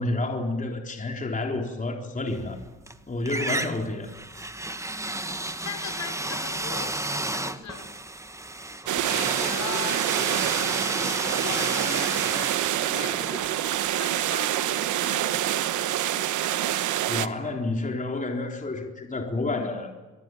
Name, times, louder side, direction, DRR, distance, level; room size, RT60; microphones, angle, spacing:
voice 1, 0.0-2.6 3.1-4.1 17.1-20.0, left 2 dB, 25° left, 2 dB, 3.7 m, -29 dB
sound 1, 2.3-2.9 3.3-14.1, right 2 dB, 10° right, 1.4 m, -32 dB
voice 2, 5.6-7.9 8.8-15.7, left 6 dB, 65° left, 7 dB, 5.7 m, -39 dB
sound 2, 8.9-17.3, right 12 dB, 75° right, 1.3 m, -26 dB
26.5 x 22.0 x 9.3 m, 1.2 s
cardioid pair, 90°, 30 cm